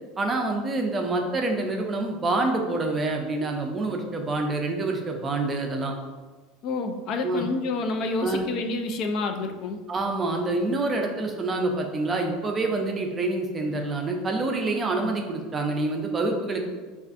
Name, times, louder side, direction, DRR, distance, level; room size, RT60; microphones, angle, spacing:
voice 1, 0.2-5.9 7.2-7.5 8.2-8.5 9.9-16.7, right 2 dB, 20° right, 2 dB, 0.4 m, -27 dB
voice 2, 6.6-9.8, left 3 dB, 45° left, 5 dB, 0.3 m, -28 dB
4.3 x 2.4 x 2.5 m, 1.3 s
supercardioid pair, 145°, 0 cm